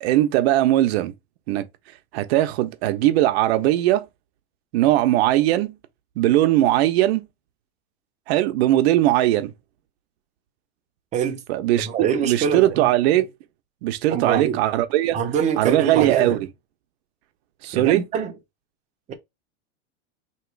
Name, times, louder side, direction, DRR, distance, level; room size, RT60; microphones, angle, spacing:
voice 1, 0.0-1.1 1.5-1.7 2.1-4.1 4.7-5.8 6.2-7.3 8.3-9.5 11.5-13.3 13.8-15.2 15.6-16.4 17.6-18.0, right 14 dB, 65° right, 0.8 m, -19 dB
voice 2, 11.8-12.9 14.1-14.6 15.1-16.4 17.7-18.3 19.1-19.2, right 7 dB, 20° right, 0.6 m, -24 dB
3.0 x 2.9 x 4.5 m
supercardioid pair, 160°, 34 cm